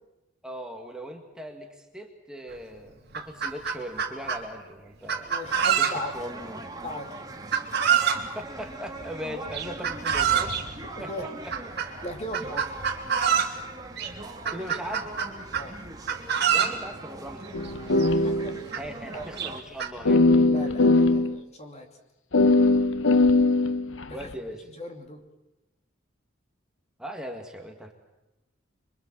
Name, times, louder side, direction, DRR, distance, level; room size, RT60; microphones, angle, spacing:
voice 1, 0.4-5.4 5.8-6.7 8.3-11.5 14.5-15.2 16.5-17.5 18.8-20.7 24.1-24.7 27.0-27.9, equal, 5° right, 2 dB, 2.0 m, -39 dB
Chicken rooster, 2.5-2.6 3.0-4.4 5.1-6.2 7.5-8.2 9.5-10.6 11.5-11.9 12.3-13.6 14.0-14.1 14.5-15.7 16.1-16.8 17.7-17.8 18.0-18.1 18.7-18.8 19.4-19.9, right 8 dB, 55° right, 3.2 m, -25 dB
voice 2, 5.3-6.4 6.8-7.1 10.8-11.3 12.0-12.6 15.5-15.7 18.2-18.8 19.1-19.2 20.4-21.9 24.0-24.3 24.7-25.2, left 1 dB, 35° left, 4 dB, 2.8 m, -38 dB
sound 1, 5.4-19.6, right 2 dB, 20° right, 2.1 m, -41 dB
sound 2, 17.5-18.9 19.1-19.2 20.0-21.4 22.3-24.3, left 2 dB, 70° left, 1.1 m, -20 dB
26.5 x 23.5 x 7.5 m, 0.97 s
head